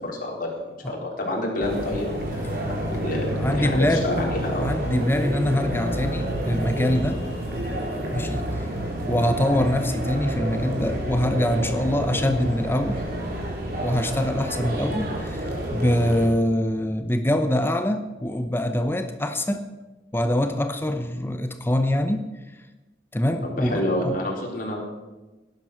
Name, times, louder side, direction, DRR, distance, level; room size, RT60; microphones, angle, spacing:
voice 1, 0.0-2.8 3.0-4.7 23.4-24.8, left 1 dB, 50° left, -1 dB, 4.2 m, -28 dB
sound 1, 1.6-16.3, right 1 dB, 55° right, 4.1 m, -29 dB
voice 2, 3.3-4.1 4.6-7.2 8.1-8.7 9.0-13.0 13.8-19.6 20.1-22.3 22.5-22.6 23.1-24.2, left 1 dB, 10° left, 7 dB, 0.8 m, -24 dB
18.0 x 11.0 x 6.5 m, 1.1 s
head